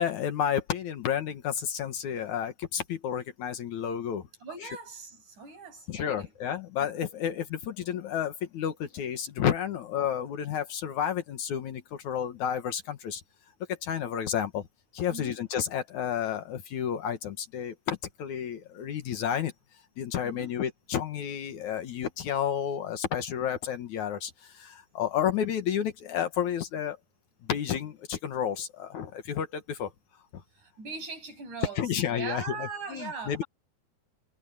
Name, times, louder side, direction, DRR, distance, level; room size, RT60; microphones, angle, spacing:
voice 1, 0.0-4.3 4.6-4.7 5.9-13.2 13.8-14.6 14.9-19.5 20.0-27.0 27.4-29.9 31.8-33.4, left 9 dB, 70° left, 2.7 m, -31 dB
voice 2, 4.4-6.3 15.1-15.4 20.2-20.5 30.6-31.8 32.1-33.4, right 5 dB, 65° right, 9.3 m, -40 dB
omnidirectional pair, 3.7 m